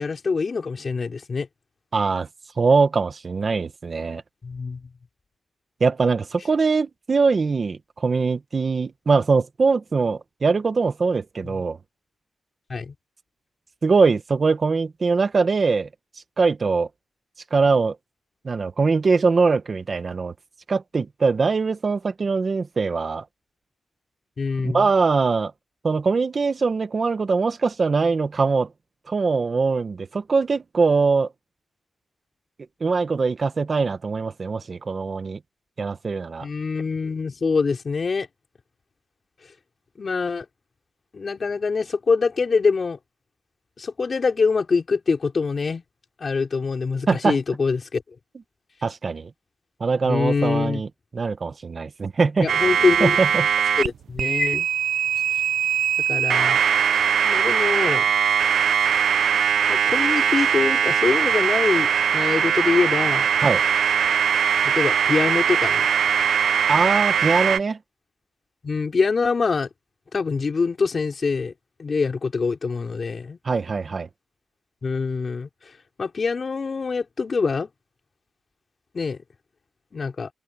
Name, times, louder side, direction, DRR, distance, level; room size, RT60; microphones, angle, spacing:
voice 1, 0.0-1.5 4.4-4.8 11.4-11.6 12.7-12.9 24.4-24.9 36.4-38.3 40.0-40.5 41.1-43.0 43.8-45.8 46.2-48.0 50.0-50.8 52.4-53.2 53.8-54.7 56.1-56.6 57.2-58.0 59.7-63.3 64.6-65.9 68.6-69.7 70.1-71.5 71.8-73.4 74.8-75.5 76.0-77.7 78.9-79.2 79.9-80.3, left 4 dB, 40° left, 4.8 m, -24 dB
voice 2, 1.9-2.3 2.6-4.2 5.8-11.8 13.8-15.9 16.4-16.9 17.5-17.9 18.4-20.3 20.7-23.2 24.6-25.5 25.8-28.7 29.1-31.3 32.8-35.4 35.8-36.5 47.1-47.4 48.8-49.3 49.8-50.9 51.1-52.5 53.0-53.5 63.4-63.6 66.7-67.8 73.4-74.1, right 4 dB, 40° right, 1.5 m, -22 dB
sound 1, 52.5-53.9 54.2-67.6, right 8 dB, 85° right, 0.7 m, -21 dB
wide cardioid pair, 125°, 0 cm